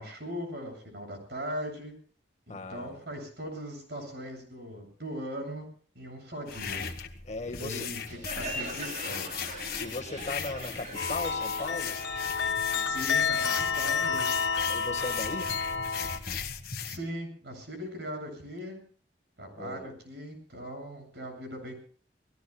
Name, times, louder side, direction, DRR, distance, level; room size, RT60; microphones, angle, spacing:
voice 1, 0.0-1.9 2.5-5.6 5.9-6.8 7.6-8.0 8.3-9.2 12.8-14.4 16.8-18.8 19.4-21.7, equal, 70° right, 7.7 m, -39 dB
voice 2, 2.5-3.0 7.2-7.9 9.8-12.0 14.6-15.6 19.5-19.9, left 3 dB, 40° left, 1.6 m, -37 dB
sound 1, 6.5-17.0, left 7 dB, 55° left, 1.5 m, -38 dB
Crowd, 8.1-13.5, right 2 dB, 45° right, 3.9 m, -41 dB
sound 2, 10.9-16.2, left 5 dB, 80° left, 1.6 m, -30 dB
29.5 x 19.0 x 2.3 m
head